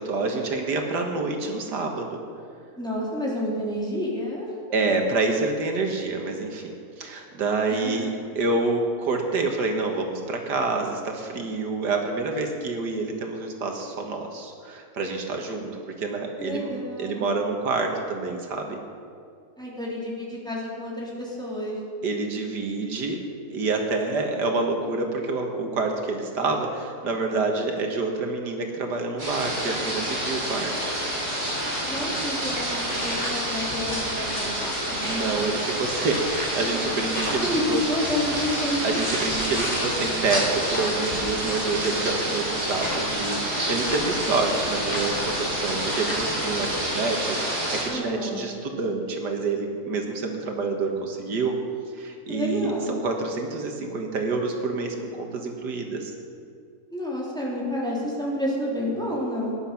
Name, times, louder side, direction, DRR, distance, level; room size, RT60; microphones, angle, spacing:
voice 1, 0.0-2.2 4.7-15.7 16.0-18.8 22.0-23.2 23.5-30.7 35.0-37.8 38.8-51.6 51.9-56.1, right 3 dB, 80° right, 3 dB, 2.0 m, -27 dB
voice 2, 2.8-4.5 7.7-8.0 16.4-17.4 19.6-21.8 31.9-35.0 37.2-37.6 37.9-38.8 47.9-48.4 52.3-53.0 56.9-59.6, left 1 dB, ahead, -5 dB, 3.3 m, -30 dB
sound 1, 29.2-47.8, right 1 dB, 45° right, 5.0 m, -28 dB
sound 2, 31.9-46.7, equal, 30° left, 4.1 m, -35 dB
18.5 x 10.0 x 5.8 m, 2.3 s
omnidirectional pair, 1.8 m